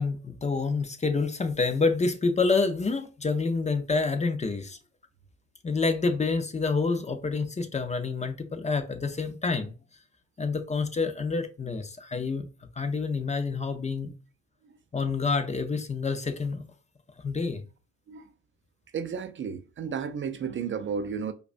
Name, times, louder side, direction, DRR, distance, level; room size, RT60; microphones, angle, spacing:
voice 1, 0.0-4.8 5.6-9.7 10.4-12.5 12.8-14.1 14.9-16.6 17.2-17.6, left 4 dB, 25° left, 0.5 m, -28 dB
voice 2, 18.9-21.3, right 6 dB, 40° right, 0.4 m, -33 dB
4.8 x 2.3 x 2.4 m
cardioid pair, 90°, 30 cm